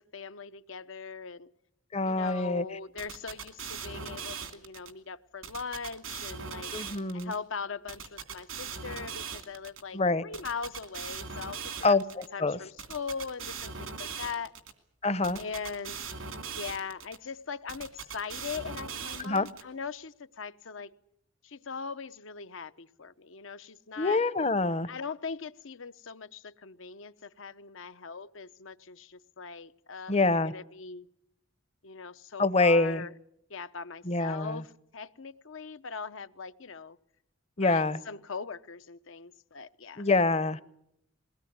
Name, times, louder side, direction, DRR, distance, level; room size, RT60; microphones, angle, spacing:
voice 1, 0.1-1.5 2.0-6.7 7.1-12.0 12.3-14.5 15.4-16.0 16.6-20.9 21.4-24.2 24.9-31.1 31.8-33.1 33.5-37.0 37.6-40.1, left 5 dB, 70° left, 12 dB, 0.9 m, -40 dB
voice 2, 1.9-2.6 6.7-7.3 9.9-10.2 11.8-12.6 15.0-15.4 19.2-19.5 24.0-24.9 30.1-30.5 32.4-33.1 34.0-34.6 37.6-38.0 40.0-40.6, left 3 dB, 30° left, 16 dB, 0.8 m, -26 dB
sound 1, 3.0-4.9 5.4-7.4 7.9-9.8 10.3-12.3 12.8-14.7 15.2-17.2 17.7-19.6, right 6 dB, 85° right, 2.6 m, -40 dB
21.5 x 19.0 x 9.4 m, 0.78 s
head